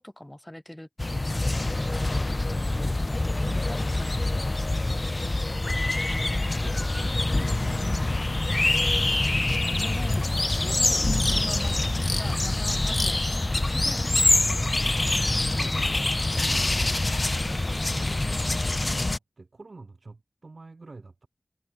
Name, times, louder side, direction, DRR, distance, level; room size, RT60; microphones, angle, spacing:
voice 1, 0.0-5.0 7.8-8.1 9.6-14.5, left 1 dB, 15° left, 2.4 m, -42 dB
sound 1, 1.0-19.2, left 2 dB, 40° left, 0.5 m, -25 dB
voice 2, 5.6-9.1 11.7-12.4 14.6-15.0 15.2-17.6 17.9-21.3, right 3 dB, 65° right, 2.6 m, -45 dB
sound 2, 6.9-16.8, left 4 dB, 85° left, 4.6 m, -54 dB
cardioid pair, 45°, 0 cm